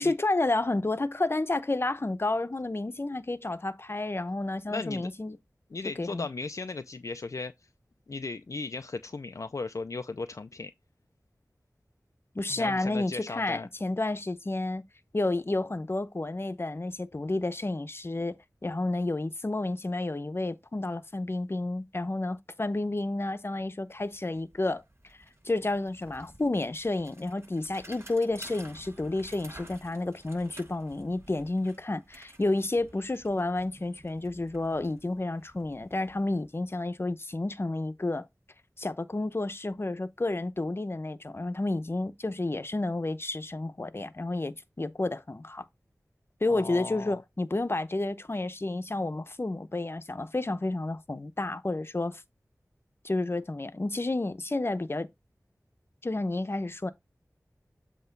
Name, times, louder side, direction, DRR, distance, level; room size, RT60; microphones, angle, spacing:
voice 1, 0.0-5.4 6.0-6.3 12.3-14.8 15.1-18.4 18.6-24.8 25.4-38.3 38.8-45.6 46.4-52.2 53.0-55.1 56.0-56.9, left 2 dB, 40° left, 0.8 m, -30 dB
voice 2, 4.7-5.1 5.7-7.5 8.1-10.7 12.5-13.7 46.5-47.2, left 3 dB, 60° left, 0.5 m, -36 dB
Bicycle, 23.6-23.7 24.0-36.9, right 1 dB, 45° right, 5.3 m, -53 dB
8.1 x 3.0 x 5.2 m
wide cardioid pair, 50°, 6 cm